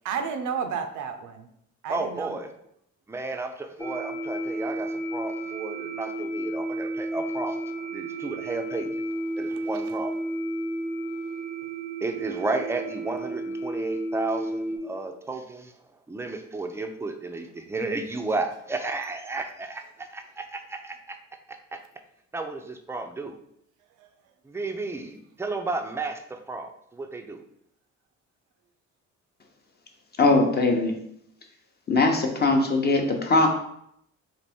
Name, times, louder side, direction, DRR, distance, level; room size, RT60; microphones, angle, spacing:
voice 1, 0.0-1.5 1.8-2.4 9.5-9.6 24.0-24.1, right 6 dB, 90° right, 6 dB, 0.5 m, -32 dB
voice 2, 1.9-2.5 3.1-8.9 9.4-10.1 12.0-15.7 16.1-21.2 21.5-21.8 22.3-23.4 24.4-27.4, right 3 dB, 10° right, 5 dB, 0.4 m, -33 dB
sound 1, 3.8-14.8, right 1 dB, 55° left, 1.1 m, -32 dB
voice 3, 30.2-30.9 31.9-33.5, left 3 dB, 35° left, 3 dB, 0.7 m, -21 dB
4.0 x 2.6 x 3.5 m, 0.74 s
cardioid pair, 90°, 30 cm